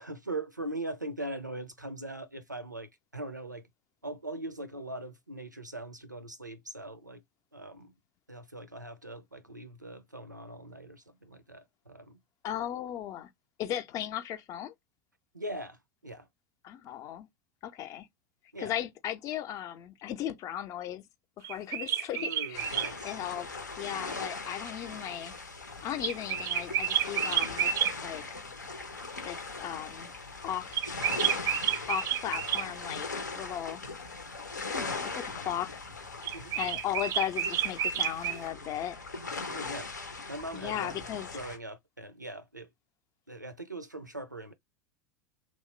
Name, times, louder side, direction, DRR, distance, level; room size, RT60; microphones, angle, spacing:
voice 1, 0.0-3.7 4.0-7.2 7.5-7.9 8.3-12.2 15.3-16.3 18.5-18.7 22.1-23.2 36.3-36.6 39.5-39.9 40.3-41.1 41.3-42.7 43.3-44.5, right 1 dB, 90° right, 0.5 m, -41 dB
voice 2, 12.4-13.3 13.6-14.7 16.6-17.3 17.6-18.1 18.6-21.0 21.4-22.7 23.0-25.3 25.8-27.7 28.0-28.2 29.2-30.1 30.4-30.9 31.9-33.8 34.7-35.8 36.5-39.0 40.5-41.3, left 11 dB, 35° left, 0.5 m, -36 dB
sound 1, 21.4-22.9 26.0-27.9 30.7-32.7 36.2-38.4, right 10 dB, 30° right, 0.4 m, -30 dB
sound 2, 22.5-41.6, left 4 dB, 80° left, 0.6 m, -40 dB
3.0 x 2.0 x 3.0 m
figure-of-eight pair, 80°, 10 cm